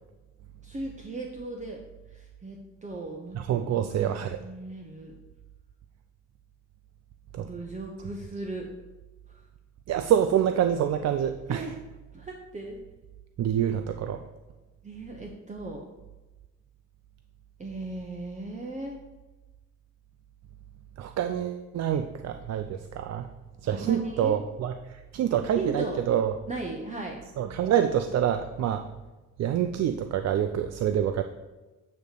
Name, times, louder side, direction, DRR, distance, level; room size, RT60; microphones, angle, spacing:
voice 1, 0.6-1.8 2.1-5.1 7.4-8.7 11.5-11.7 12.1-12.8 14.8-15.9 17.6-19.0 23.6-24.4 25.5-26.0 26.5-27.5, right 2 dB, 25° right, 1 dB, 0.9 m, -37 dB
voice 2, 3.3-4.4 7.3-7.5 9.9-11.6 13.4-14.2 21.0-23.3 23.6-26.3 27.4-28.8 29.4-31.2, right 9 dB, 60° right, 8 dB, 0.5 m, -26 dB
9.1 x 3.1 x 6.6 m, 1.2 s
cardioid pair, 90°, 30 cm